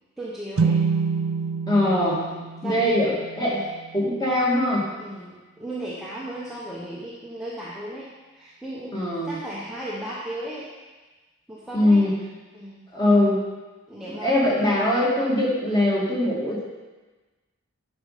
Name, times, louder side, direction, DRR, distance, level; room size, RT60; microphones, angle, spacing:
voice 1, 0.2-0.8 2.0-2.8 3.4-3.6 5.0-8.1 8.3-8.9 9.2-10.7 11.5-12.1 12.5-12.8 13.9-14.5, right 1 dB, ahead, -8 dB, 0.9 m, -36 dB
sound 1, 0.6-4.1, right 5 dB, 70° right, 0.5 m, -27 dB
voice 2, 1.7-2.2 2.6-3.6 3.9-4.9 8.9-9.4 11.7-12.1 12.9-13.4 14.1-16.6, left 1 dB, 20° left, -6 dB, 2.2 m, -21 dB
10.0 x 5.3 x 5.1 m, 1.3 s
head